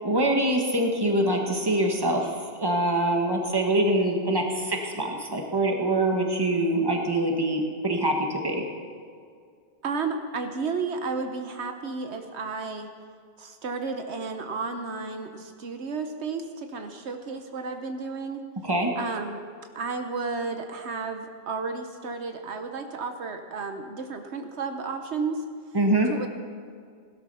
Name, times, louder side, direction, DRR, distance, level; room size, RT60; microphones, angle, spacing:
voice 1, 0.0-8.6 18.6-18.9 25.7-26.1, right 1 dB, 20° right, 2 dB, 1.6 m, -24 dB
voice 2, 9.8-12.9 13.4-18.4 19.0-19.4 19.7-25.4 26.1-26.3, right 4 dB, 75° right, 6 dB, 1.2 m, -32 dB
17.0 x 12.5 x 5.6 m, 2.2 s
omnidirectional pair, 1.1 m